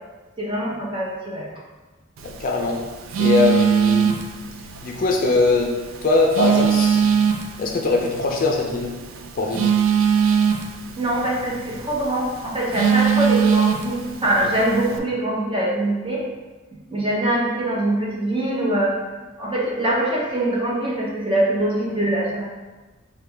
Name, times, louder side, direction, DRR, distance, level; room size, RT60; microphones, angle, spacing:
voice 1, 0.4-1.5 11.0-16.2 16.9-19.0 19.4-22.5, right 1 dB, 25° right, -5 dB, 0.9 m, -23 dB
voice 2, 2.2-2.8 3.2-4.1 4.8-5.7 6.0-7.1 7.6-8.9 9.4-9.7, left 3 dB, 45° left, 1 dB, 0.4 m, -21 dB
Telephone, 2.2-15.0, right 7 dB, 80° right, 0.4 m, -23 dB
4.9 x 2.3 x 3.4 m, 1.2 s
head